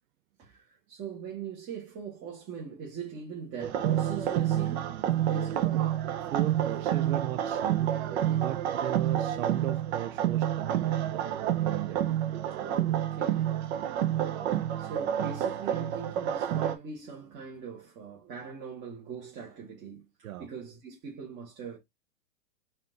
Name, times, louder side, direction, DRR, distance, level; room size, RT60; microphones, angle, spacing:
voice 1, 0.4-5.0 5.3-5.7 8.2-8.4 12.6-13.5 14.8-21.8, right 6 dB, 25° right, 1.3 m, -41 dB
sound 1, 3.6-16.8, right 11 dB, 50° right, 0.8 m, -29 dB
voice 2, 6.3-8.0 8.3-12.1 20.2-20.5, right 13 dB, 80° right, 0.7 m, -36 dB
4.2 x 2.6 x 3.8 m
hypercardioid pair, 140°, 41 cm